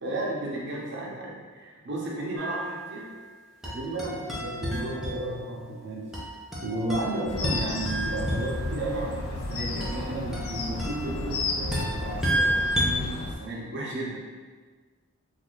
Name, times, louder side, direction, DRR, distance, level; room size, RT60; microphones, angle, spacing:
voice 1, 0.0-3.1 3.6-6.1 6.6-14.2, right 2 dB, 50° right, -4 dB, 0.7 m, -33 dB
sound 1, 2.4-3.2 3.6-5.6 6.1-8.8 9.8-12.9, equal, ahead, 0.5 m, -31 dB
sound 2, 7.3-13.3, left 2 dB, 70° left, 0.4 m, -33 dB
2.7 x 2.5 x 3.7 m, 1.4 s
head